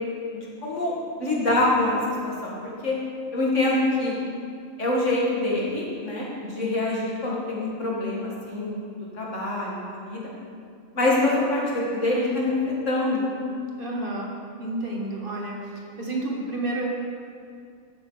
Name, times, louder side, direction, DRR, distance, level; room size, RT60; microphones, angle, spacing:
voice 1, 0.3-2.0 2.2-2.5 2.8-2.9 3.3-4.2 4.8-6.3 6.5-8.8 9.1-10.3 10.9-12.5 12.9-13.3, left 2 dB, 60° left, -4 dB, 2.3 m, -25 dB
voice 2, 13.8-14.3 14.6-16.8, right 2 dB, 40° right, -2 dB, 1.3 m, -30 dB
11.5 x 9.1 x 4.0 m, 2.3 s
omnidirectional pair, 1.4 m